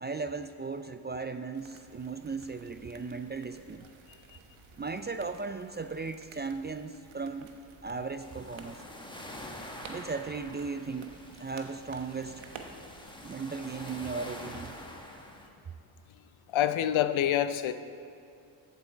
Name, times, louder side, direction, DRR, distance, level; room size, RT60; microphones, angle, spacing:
voice 1, 0.0-3.9 4.8-7.5 7.8-8.8 9.9-11.1 11.4-12.4 13.2-14.8, right 4 dB, 25° right, 10 dB, 0.4 m, -37 dB
sound 1, 1.5-14.9, right 5 dB, 70° right, 1.2 m, -53 dB
sound 2, 8.2-15.5, left 1 dB, 10° left, 1.5 m, -46 dB
voice 2, 16.5-17.7, left 11 dB, 70° left, 11 dB, 0.7 m, -26 dB
14.5 x 8.1 x 4.5 m, 2.6 s
cardioid pair, 70°, 50 cm